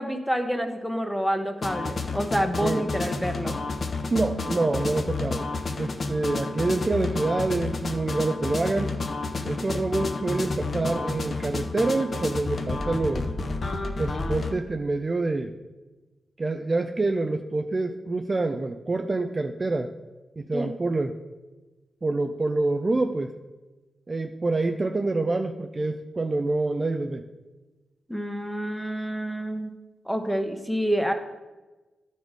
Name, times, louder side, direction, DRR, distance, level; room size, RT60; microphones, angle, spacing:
voice 1, 0.0-3.6 20.5-20.7 28.1-29.7 30.0-31.1, equal, ahead, 5 dB, 0.9 m, -28 dB
sound 1, 1.6-14.5, left 3 dB, 45° left, 0.7 m, -30 dB
voice 2, 4.1-5.5 5.8-8.9 9.4-13.3 14.0-15.5 16.4-19.9 20.4-21.2 22.0-23.3 24.1-27.2, right 2 dB, 30° right, 5 dB, 0.4 m, -26 dB
12.0 x 4.1 x 4.7 m, 1.2 s
cardioid pair, 100°, 0 cm